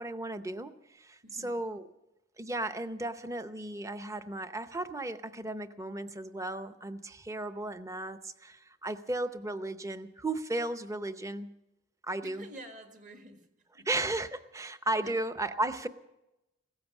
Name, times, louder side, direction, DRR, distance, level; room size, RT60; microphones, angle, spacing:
voice 1, 0.0-1.8 2.4-11.5 12.1-12.5 13.9-15.9, right 2 dB, 15° right, 0.7 m, -35 dB
voice 2, 1.2-1.5 12.2-13.5 13.7-13.9 15.0-15.2, right 1 dB, 40° right, 1.7 m, -49 dB
16.5 x 14.5 x 6.1 m
head